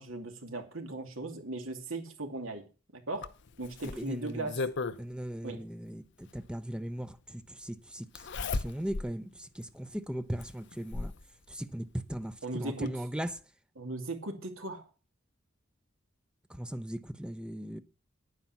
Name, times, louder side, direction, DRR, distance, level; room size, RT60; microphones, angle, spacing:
voice 1, 0.0-3.3 3.6-4.6 5.4-5.6 12.4-12.9 13.8-14.9, right 2 dB, 80° right, 2.7 m, -38 dB
Zipper (clothing), 3.2-5.0 6.4-6.5 8.1-9.1 9.6-9.7 10.4-11.2 12.4-12.5 12.9-13.0, left 3 dB, 60° left, 0.8 m, -35 dB
voice 2, 3.8-4.5 5.0-11.1 11.5-13.4 16.5-17.8, equal, 5° right, 0.7 m, -38 dB
10.5 x 9.5 x 5.9 m
head